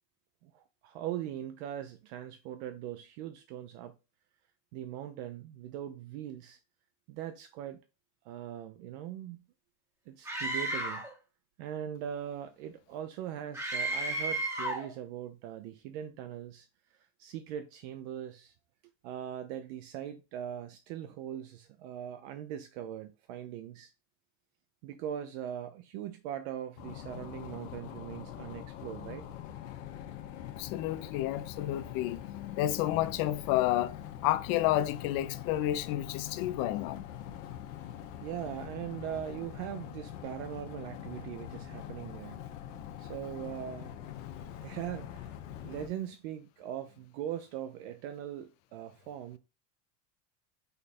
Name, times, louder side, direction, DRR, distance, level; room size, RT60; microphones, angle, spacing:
voice 1, 0.4-3.9 4.7-6.6 7.1-7.8 8.2-9.4 10.1-11.0 11.6-16.7 17.2-18.5 19.0-23.9 24.8-29.3 37.9-38.0 38.2-42.4 43.0-44.0 44.6-49.4, right 10 dB, 60° right, 0.6 m, -40 dB
Screaming, 10.3-11.1 13.5-14.9, right 1 dB, 5° right, 0.8 m, -33 dB
sound 1, 26.8-45.9, left 10 dB, 80° left, 1.0 m, -44 dB
voice 2, 30.6-37.1, left 14 dB, 50° left, 0.5 m, -31 dB
5.3 x 2.3 x 4.1 m
supercardioid pair, 150°, 38 cm